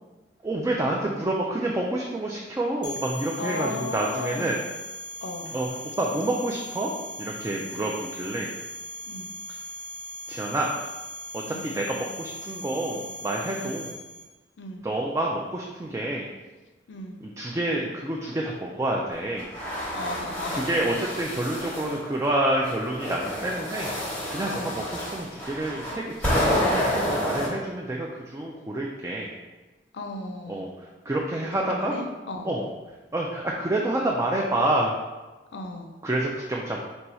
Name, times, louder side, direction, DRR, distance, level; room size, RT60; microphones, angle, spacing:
voice 1, 0.4-4.6 5.5-5.7 6.0-6.9 7.2-8.5 10.3-10.7 11.3-13.9 14.8-16.3 17.2-19.5 20.5-29.3 30.5-31.9 32.4-32.6 33.1-34.9 36.0-36.9, right 1 dB, 15° right, -1 dB, 0.3 m, -28 dB
sound 1, 2.8-14.2, left 1 dB, 30° left, 0.6 m, -39 dB
voice 2, 3.4-4.6 5.2-5.5 7.7-7.9 9.1-9.3 11.4-11.7 13.5-13.8 14.6-14.9 16.9-17.2 19.9-21.0 24.5-24.8 29.9-30.7 31.5-32.5 35.5-35.9, left 2 dB, 85° left, 5 dB, 0.5 m, -36 dB
sound 2, 19.4-22.0 22.6-27.5, equal, 10° left, 0.9 m, -29 dB
4.0 x 2.3 x 4.2 m, 1.2 s
head